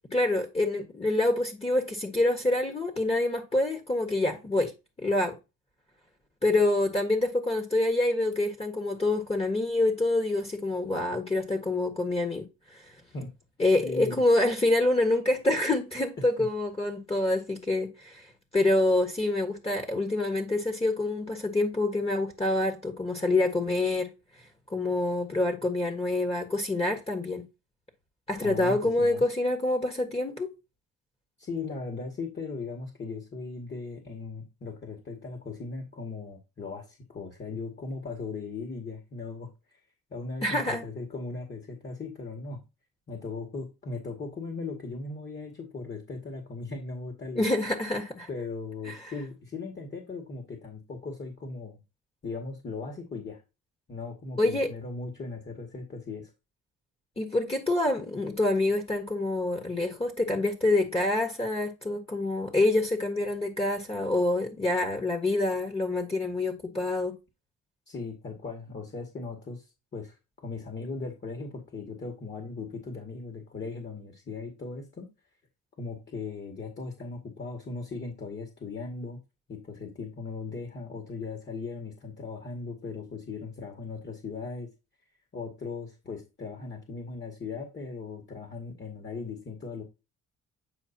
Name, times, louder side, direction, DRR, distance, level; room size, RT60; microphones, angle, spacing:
voice 1, 0.1-4.7 5.0-5.4 6.4-12.8 13.6-24.1 24.7-27.4 28.3-30.5 40.4-40.8 47.3-48.3 48.9-49.1 54.4-54.7 57.2-67.1, left 2 dB, 20° left, 1.5 m, -26 dB
voice 2, 13.8-14.2 16.2-16.3 28.4-29.3 31.4-39.8 40.1-42.6 43.1-47.4 48.3-51.8 52.2-53.4 53.9-56.3 67.9-75.1 75.8-79.2 79.5-84.7 85.3-89.8, left 4 dB, 35° left, 2.1 m, -38 dB
9.1 x 4.9 x 2.8 m
cardioid pair, 90°, 30 cm